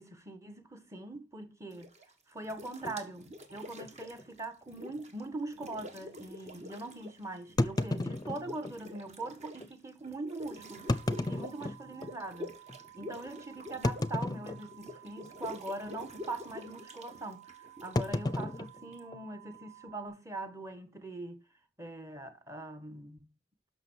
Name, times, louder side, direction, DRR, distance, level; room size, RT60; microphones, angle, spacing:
voice 1, 0.0-1.9 2.3-12.6 12.9-21.4 21.8-23.3, right 2 dB, 15° right, 1.4 m, -42 dB
sound 1, 1.7-2.1 2.4-5.2 5.5-7.2 7.5-19.0, left 1 dB, 40° right, 1.5 m, -47 dB
sound 2, 2.8-3.0 3.8-3.9 4.2-4.3 4.9-5.0 7.6-8.8 9.6-9.7 10.7-12.2 12.7-12.8 13.8-14.9 15.2-15.6 15.8-16.2 18.0-19.6, left 2 dB, 20° left, 0.6 m, -33 dB
sound 3, 10.6-20.1, right 13 dB, 85° right, 2.7 m, -55 dB
11.0 x 6.4 x 4.5 m
head